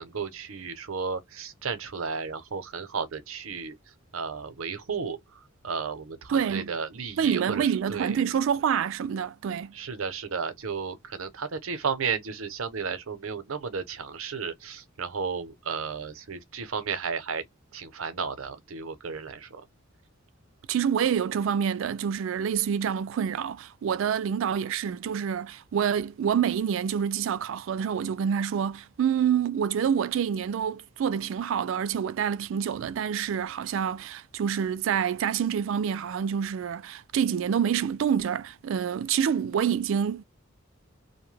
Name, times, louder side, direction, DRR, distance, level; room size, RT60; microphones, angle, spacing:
voice 1, 0.0-3.7 4.1-8.2 9.7-17.4 17.7-19.6, right 5 dB, 90° right, 0.7 m, -33 dB
voice 2, 6.3-6.7 7.2-9.7 20.7-40.2, right 8 dB, 70° right, 0.3 m, -27 dB
2.7 x 2.2 x 3.2 m
head